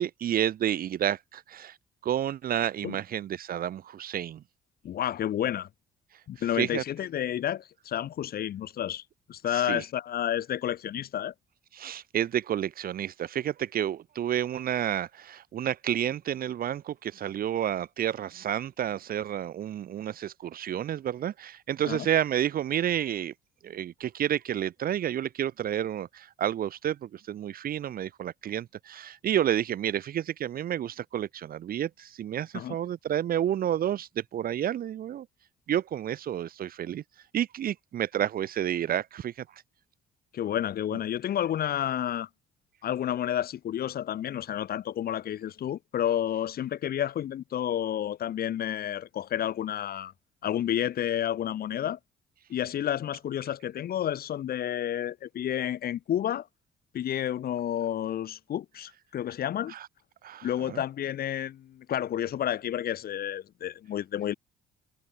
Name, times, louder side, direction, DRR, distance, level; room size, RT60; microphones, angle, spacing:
voice 1, 0.0-1.8 2.0-4.4 6.6-6.8 9.5-9.8 11.7-23.3 23.6-35.3 35.7-37.0 37.3-39.5 59.7-59.9 60.2-60.8, right 10 dB, 45° right, 0.5 m, -30 dB
voice 2, 4.8-5.7 6.3-9.0 9.3-11.3 21.9-22.1 32.5-32.7 40.3-42.3 42.8-50.1 50.4-52.0 52.5-56.5 56.9-59.7 60.4-64.3, left 10 dB, 45° left, 0.6 m, -30 dB
hypercardioid pair, 50°, 21 cm